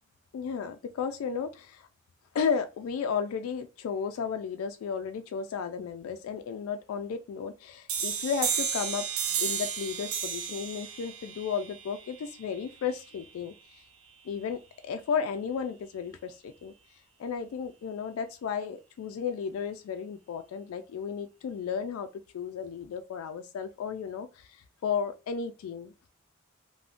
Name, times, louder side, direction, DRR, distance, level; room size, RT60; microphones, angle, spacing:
voice 1, 0.3-1.9 2.3-9.1 9.4-13.8 14.2-16.7 17.2-25.9, left 6 dB, 85° left, 0.3 m, -34 dB
sound 1, 7.9-13.3, right 7 dB, 85° right, 0.6 m, -33 dB
2.4 x 2.1 x 3.5 m
head